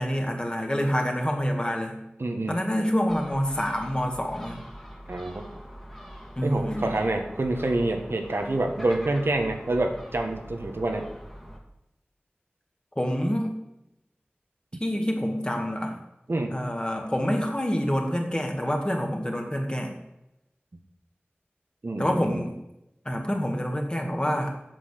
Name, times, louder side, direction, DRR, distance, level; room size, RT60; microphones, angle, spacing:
voice 1, 0.0-2.0 2.5-4.6 6.4-6.9 13.0-13.6 14.8-16.0 16.5-19.9 22.0-22.5 23.1-24.5, equal, 25° left, 2 dB, 1.8 m, -27 dB
voice 2, 2.2-2.6 5.1-5.4 6.4-11.1 16.3-16.6 21.8-22.4, right 2 dB, 80° right, 3 dB, 1.3 m, -27 dB
Gull seagull, 3.1-11.6, equal, 5° left, 1.9 m, -43 dB
8.2 x 6.4 x 6.5 m, 0.88 s
wide cardioid pair, 45°, 4 cm